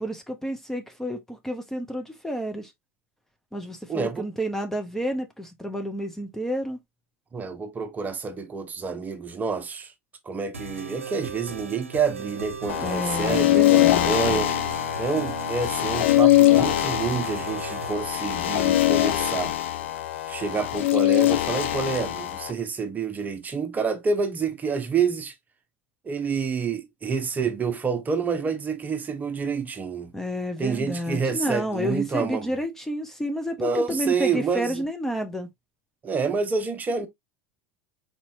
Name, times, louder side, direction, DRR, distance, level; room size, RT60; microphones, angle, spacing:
voice 1, 0.0-2.7 3.5-6.8 12.8-14.5 30.1-35.5, equal, 5° left, 1.0 m, -30 dB
voice 2, 3.9-4.3 7.3-9.9 10.3-14.5 15.0-19.5 20.3-25.3 26.0-30.1 30.6-32.5 33.6-34.8 36.0-37.1, right 5 dB, 25° right, 1.0 m, -28 dB
sound 1, 10.5-17.9, right 5 dB, 85° right, 0.7 m, -37 dB
sound 2, 12.7-22.5, left 15 dB, 65° left, 0.8 m, -22 dB
4.3 x 4.3 x 2.6 m
figure-of-eight pair, 75°, 7 cm